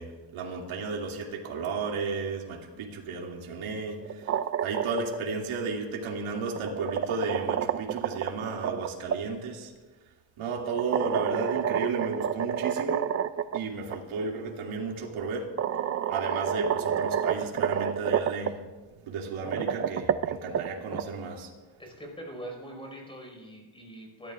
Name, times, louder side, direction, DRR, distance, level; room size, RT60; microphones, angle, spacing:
voice 1, 0.0-4.3 4.6-9.7 10.4-13.1 13.5-15.5 16.1-18.6 19.1-21.5, right 4 dB, 75° right, 0 dB, 2.7 m, -33 dB
sound 1, 4.0-5.2 6.3-9.2 10.8-13.6 13.9-14.0 15.1-15.2 15.6-18.5 19.3-21.0, right 9 dB, 35° right, 0.4 m, -29 dB
voice 2, 21.8-24.3, right 1 dB, 10° left, 0 dB, 5.2 m, -42 dB
25.0 x 13.0 x 2.5 m, 1.3 s
cardioid pair, 115°, 49 cm